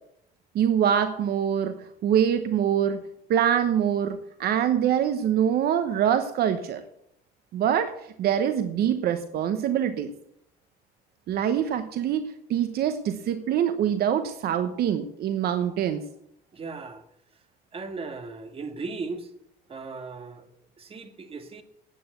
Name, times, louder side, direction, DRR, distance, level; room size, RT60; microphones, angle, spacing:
voice 1, 0.5-3.0 3.3-6.8 7.5-7.9 8.2-10.1 11.3-16.0, right 9 dB, 65° right, 9 dB, 0.9 m, -24 dB
voice 2, 16.5-17.0 17.7-19.3 19.7-20.4 20.8-21.6, right 4 dB, 35° right, 7 dB, 1.8 m, -37 dB
9.1 x 8.7 x 7.9 m, 0.74 s
cardioid pair, 110°, 17 cm